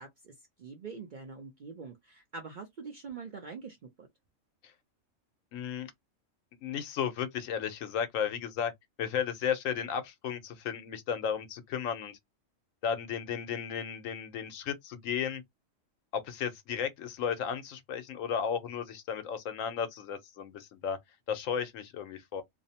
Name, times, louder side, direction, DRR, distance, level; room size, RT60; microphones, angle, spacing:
voice 1, 0.0-4.1, right 4 dB, 55° right, 0.5 m, -44 dB
voice 2, 5.5-5.9 6.6-8.7 9.0-12.2 12.8-15.4 16.1-21.0 21.3-22.4, left 7 dB, 75° left, 1.0 m, -34 dB
2.6 x 2.0 x 2.7 m
omnidirectional pair, 1.4 m